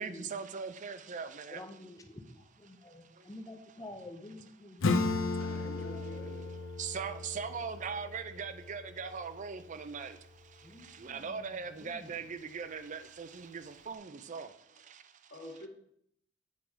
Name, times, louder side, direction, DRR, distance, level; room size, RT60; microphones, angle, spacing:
voice 1, 0.0-1.6 3.1-3.3 4.9-5.8 6.0-6.4 6.7-15.3, right 5 dB, 40° right, 0.4 m, -41 dB
voice 2, 1.5-5.0 10.6-12.2, left 1 dB, 15° left, 0.6 m, -49 dB
Acoustic guitar / Strum, 4.8-10.0, left 3 dB, 70° left, 0.6 m, -35 dB
voice 3, 5.3-6.6 10.8-10.9 11.3-11.4 15.3-15.7, left 1 dB, 55° left, 1.8 m, -48 dB
8.2 x 4.7 x 4.8 m
head